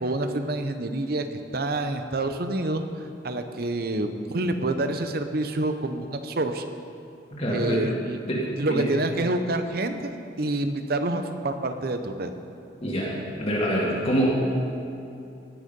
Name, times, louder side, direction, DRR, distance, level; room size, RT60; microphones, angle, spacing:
voice 1, 0.0-1.2 1.5-2.8 3.2-6.6 7.5-8.2 8.6-10.1 10.4-12.3, right 2 dB, 55° right, 7 dB, 0.8 m, -27 dB
voice 2, 7.3-7.9 8.3-8.9 12.8-14.5, equal, 35° left, -4 dB, 2.0 m, -25 dB
18.0 x 6.6 x 5.3 m, 2.6 s
head